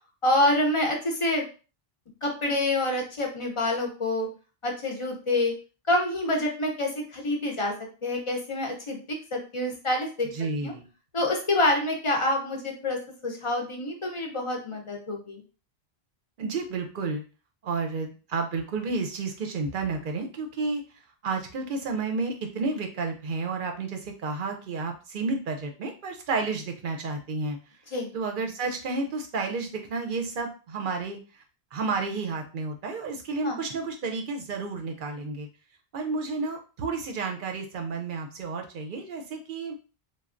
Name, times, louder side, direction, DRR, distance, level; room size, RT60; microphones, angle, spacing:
voice 1, 0.2-1.4 2.2-4.3 4.6-5.5 5.9-7.7 8.0-9.0 9.3-10.3 10.6-10.7 11.1-15.4 27.9-28.1 33.4-33.6, left 1 dB, 35° left, 1 dB, 0.6 m, -27 dB
voice 2, 10.3-10.9 16.4-17.2 17.6-20.8 21.2-27.6 28.1-31.4 31.7-35.5 35.9-39.8, right 4 dB, 60° right, 4 dB, 0.7 m, -31 dB
3.2 x 2.3 x 2.4 m, 0.35 s
omnidirectional pair, 1.0 m